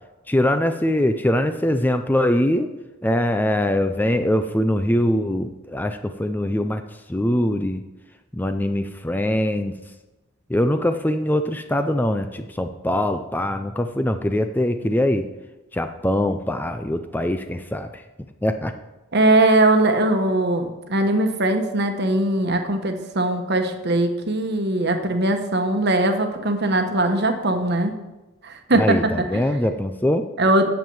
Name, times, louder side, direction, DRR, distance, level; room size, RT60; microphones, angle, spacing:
voice 1, 0.3-2.7 3.0-6.8 7.1-7.8 8.3-9.7 10.5-15.2 15.7-18.0 18.4-18.7 28.7-30.2, left 1 dB, 10° left, 8 dB, 0.4 m, -22 dB
voice 2, 19.1-27.9 28.4-29.3 30.4-30.6, right 2 dB, 55° right, 6 dB, 1.2 m, -20 dB
9.3 x 7.5 x 7.0 m, 1.1 s
head